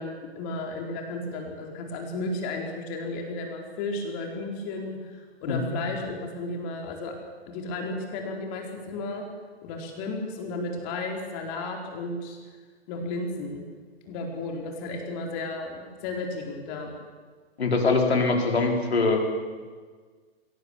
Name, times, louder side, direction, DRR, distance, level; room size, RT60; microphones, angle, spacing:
voice 1, 0.0-7.1 7.5-9.2 9.6-12.4 12.9-13.6 14.1-16.9, left 2 dB, 40° left, 2 dB, 4.3 m, -33 dB
voice 2, 17.6-19.2, left 3 dB, 80° left, 2 dB, 4.6 m, -23 dB
23.0 x 18.0 x 7.4 m, 1.5 s
figure-of-eight pair, 110°, 31 cm